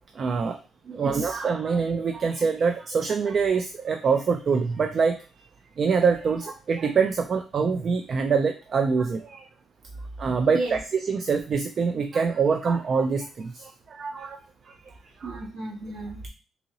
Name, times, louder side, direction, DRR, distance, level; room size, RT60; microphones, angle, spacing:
voice 1, 0.2-0.6 1.0-5.2 5.8-9.4 10.2-14.4 15.2-15.4, right 5 dB, 50° right, 6 dB, 0.4 m, -25 dB
voice 2, 0.8-1.4 10.5-10.8 15.2-16.3, right 2 dB, 65° right, 1 dB, 1.2 m, -33 dB
4.0 x 2.9 x 2.6 m, 0.34 s
cardioid pair, 90°, 0 cm